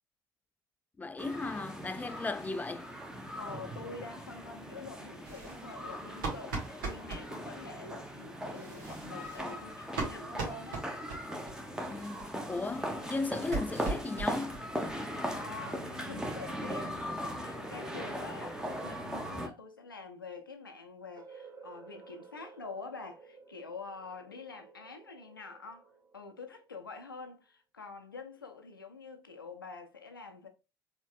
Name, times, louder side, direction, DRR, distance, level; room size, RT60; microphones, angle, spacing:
voice 1, 1.0-2.9 11.9-14.6, left 3 dB, 15° left, 0.4 m, -36 dB
sound 1, 1.2-19.5, equal, 5° right, 1.0 m, -39 dB
voice 2, 3.4-10.8 14.9-30.5, left 4 dB, 85° left, 0.6 m, -46 dB
sound 2, 5.2-7.3 8.4-11.5 11.8-11.9 12.2-12.3 12.6-14.6 14.9-15.0 15.3-15.4 15.7-15.8 16.1-16.9, right 3 dB, 75° right, 1.8 m, -40 dB
sound 3, 21.2-27.0, right 5 dB, 30° right, 1.4 m, -54 dB
4.4 x 3.5 x 2.3 m
figure-of-eight pair, 60°, 11 cm